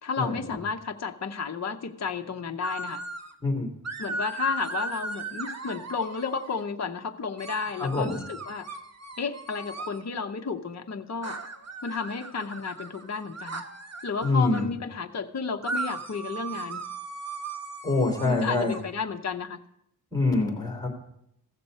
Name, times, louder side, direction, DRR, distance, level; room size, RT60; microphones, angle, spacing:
voice 1, 0.0-3.0 4.0-8.7 9.2-11.4 11.8-13.6 14.0-16.8 18.2-19.6, left 5 dB, 45° left, 5 dB, 0.7 m, -32 dB
sound 1, 2.6-3.3 3.8-6.6 7.4-10.0 11.2-14.7 15.6-18.8, right 3 dB, 40° right, 1.1 m, -37 dB
voice 2, 7.8-8.2 14.2-14.7 17.8-18.7 20.1-20.9, left 3 dB, 10° left, 1 dB, 3.1 m, -25 dB
15.5 x 6.8 x 5.3 m, 0.78 s
wide cardioid pair, 95°, 39 cm